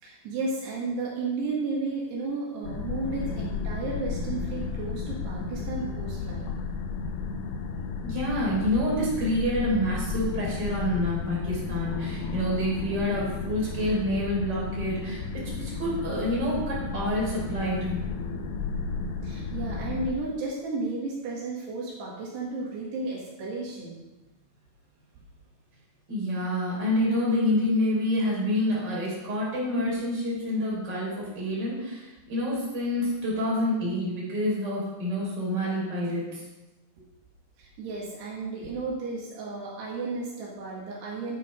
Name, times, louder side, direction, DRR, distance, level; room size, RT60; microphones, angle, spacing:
voice 1, 0.0-6.5 19.2-24.0 37.0-37.1 37.6-41.4, right 3 dB, 75° right, -4 dB, 3.8 m, -33 dB
sound 1, 2.6-20.1, left 4 dB, 80° left, 2.8 m, -33 dB
voice 2, 8.0-18.0 26.1-36.4, left 1 dB, 25° right, -5 dB, 4.5 m, -28 dB
9.5 x 9.0 x 5.2 m, 1.1 s
omnidirectional pair, 4.9 m